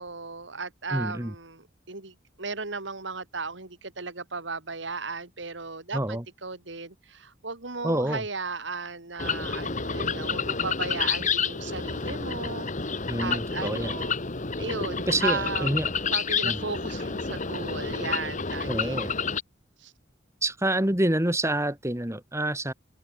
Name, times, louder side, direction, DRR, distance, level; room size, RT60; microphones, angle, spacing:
voice 1, 0.0-12.7 13.2-14.2 14.6-15.7 16.1-19.1 19.8-19.9, right 4 dB, 70° right, 2.7 m, -35 dB
voice 2, 0.9-1.3 5.9-6.2 7.8-8.2 13.1-13.9 15.1-15.9 16.4-16.6 18.7-19.1 20.4-22.7, right 1 dB, 15° right, 2.4 m, -27 dB
sound 1, 9.2-19.4, left 5 dB, 40° left, 1.8 m, -29 dB
head